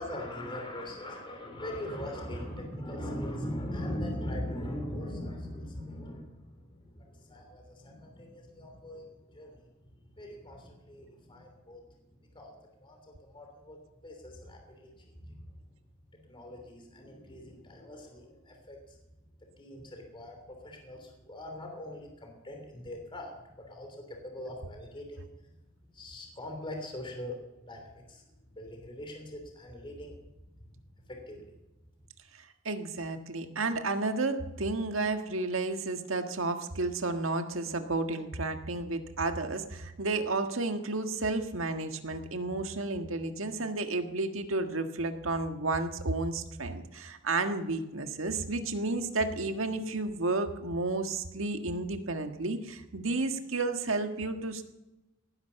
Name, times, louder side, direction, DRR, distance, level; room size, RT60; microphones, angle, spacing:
voice 1, 0.0-9.7 10.1-11.8 12.2-12.5 12.8-13.8 14.0-15.4 16.1-19.0 19.6-25.5 25.9-27.4 27.6-28.2 28.5-30.2 31.0-31.5, left 1 dB, 25° left, 2 dB, 3.1 m, -41 dB
voice 2, 32.6-54.6, right 3 dB, 90° right, 6 dB, 1.6 m, -32 dB
18.5 x 10.5 x 6.9 m, 1.0 s
head